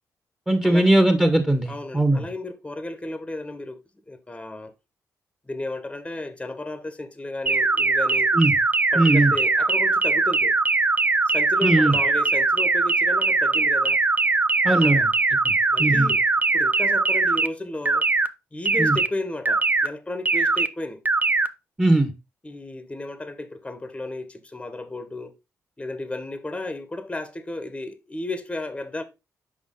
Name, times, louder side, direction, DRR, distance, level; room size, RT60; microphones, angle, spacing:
voice 1, 0.5-2.3 8.3-8.5 8.9-9.3 11.6-11.9 14.6-15.1 15.4-15.5 15.8-16.1 18.8-19.0 21.8-22.1, right 1 dB, 10° right, 1.5 m, -19 dB
voice 2, 1.7-3.8 4.1-4.7 5.4-8.3 8.9-10.5 11.3-14.0 14.7-15.1 15.7-16.2 16.5-18.1 18.5-21.0 22.4-25.3 25.8-29.0, left 2 dB, 15° left, 1.2 m, -33 dB
sound 1, 7.5-17.5 17.9-18.3 18.7-19.1 19.5-19.9 20.3-20.7 21.1-21.5, right 3 dB, 30° right, 0.6 m, -21 dB
6.2 x 5.1 x 3.8 m
cardioid pair, 75°, 6 cm